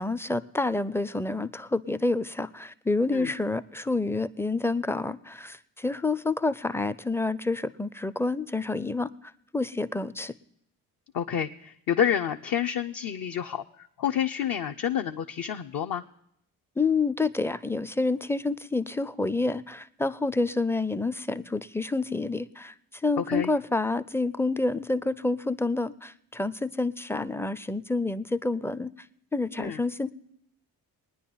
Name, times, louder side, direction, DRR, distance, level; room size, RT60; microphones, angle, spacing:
voice 1, 0.0-9.1 9.5-10.3 16.8-28.9 29.3-30.1, left 3 dB, 5° left, 16 dB, 0.4 m, -28 dB
voice 2, 11.1-13.6 14.0-16.0 23.2-23.5 29.6-29.8, left 9 dB, 50° left, 4 dB, 0.7 m, -28 dB
21.5 x 9.9 x 3.9 m, 0.73 s
hypercardioid pair, 45°, 46 cm